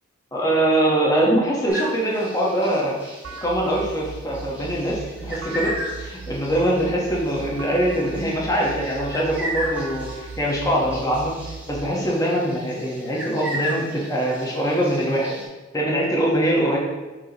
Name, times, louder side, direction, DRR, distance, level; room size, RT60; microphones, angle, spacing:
voice 1, 0.3-5.7 6.0-11.4 11.7-15.4 15.7-16.8, right 1 dB, 15° left, -3 dB, 1.1 m, -23 dB
sound 1, 1.7-15.5, equal, 10° right, 1.4 m, -36 dB
sound 2, 3.2-11.9, right 5 dB, 80° right, 0.4 m, -38 dB
6.5 x 4.9 x 2.9 m, 1.2 s
head